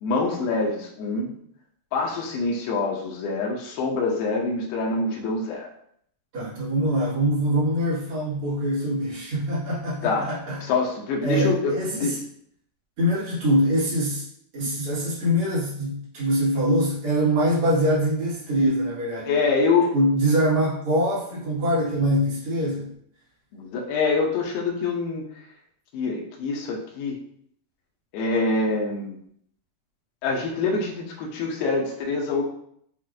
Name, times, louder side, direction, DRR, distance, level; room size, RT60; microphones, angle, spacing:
voice 1, 0.0-1.4 1.9-5.7 10.0-10.3 10.6-12.1 19.3-19.9 23.5-25.2 25.9-27.2 28.1-29.2 30.2-32.4, left 3 dB, 85° left, -1 dB, 2.3 m, -25 dB
voice 2, 6.3-10.6 11.2-12.2 13.0-14.2 14.5-19.3 19.9-22.9, equal, 55° right, -10 dB, 1.6 m, -23 dB
7.3 x 2.4 x 2.5 m, 0.67 s
omnidirectional pair, 5.0 m